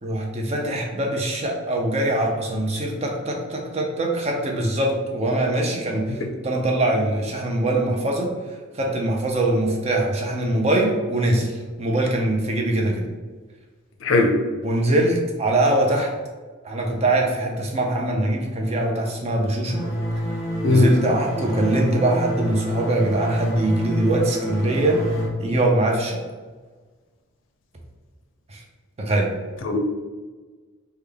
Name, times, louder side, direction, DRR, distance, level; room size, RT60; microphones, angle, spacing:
voice 1, 0.0-8.3 8.8-13.1 14.6-16.1 16.6-19.9 20.7-25.0 25.4-26.2 28.5-28.6 29.0-29.3, right 1 dB, 30° right, 1 dB, 0.5 m, -22 dB
voice 2, 14.0-14.4 20.6-20.9 29.6-29.8, left 2 dB, 60° left, 4 dB, 0.5 m, -19 dB
sound 1, 19.7-25.3, equal, 15° left, 0.8 m, -28 dB
3.5 x 2.3 x 3.3 m, 1.4 s
head